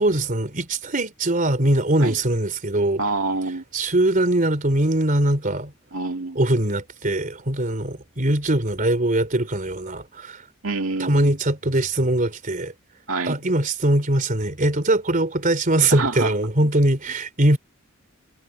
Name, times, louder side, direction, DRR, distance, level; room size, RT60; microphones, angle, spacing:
voice 1, 0.0-3.0 3.7-5.7 6.3-10.4 11.0-12.7 13.3-17.6, right 1 dB, 40° right, 3.5 m, -21 dB
voice 2, 3.0-3.6 5.9-6.4 10.6-11.4 13.1-13.4 15.9-16.3, right 3 dB, 70° right, 2.3 m, -26 dB
head